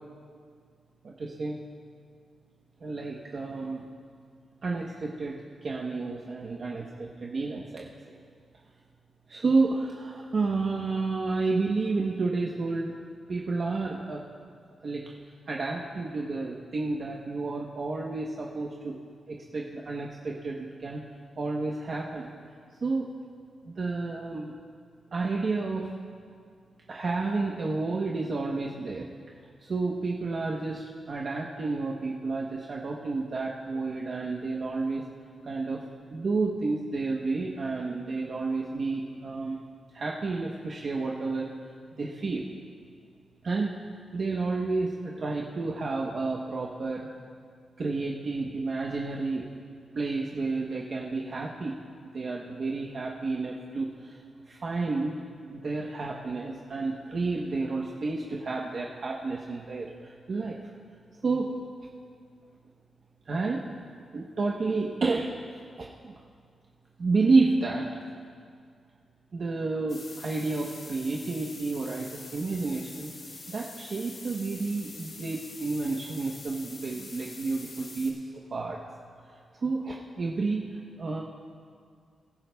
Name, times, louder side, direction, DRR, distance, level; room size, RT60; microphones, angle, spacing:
voice 1, 1.0-1.6 2.8-3.8 4.6-7.9 9.3-12.9 13.3-14.2 14.8-15.1 15.5-19.0 19.3-21.0 21.4-22.3 22.8-23.1 23.6-24.5 25.1-25.9 26.9-29.1 29.6-35.0 35.4-39.6 39.9-41.5 41.9-42.5 43.4-43.8 44.1-47.1 47.8-49.5 49.9-51.8 52.1-54.2 54.5-55.2 55.5-60.6 61.2-61.5 63.3-63.7 64.1-66.2 67.0-67.9 69.3-73.1 73.5-78.8 79.6-81.2, right 3 dB, 50° right, -2 dB, 0.9 m, -30 dB
sound 1, 69.9-78.1, left 3 dB, 55° left, 2.6 m, -45 dB
23.5 x 11.0 x 2.3 m, 2.2 s
wide cardioid pair, 115°, 0 cm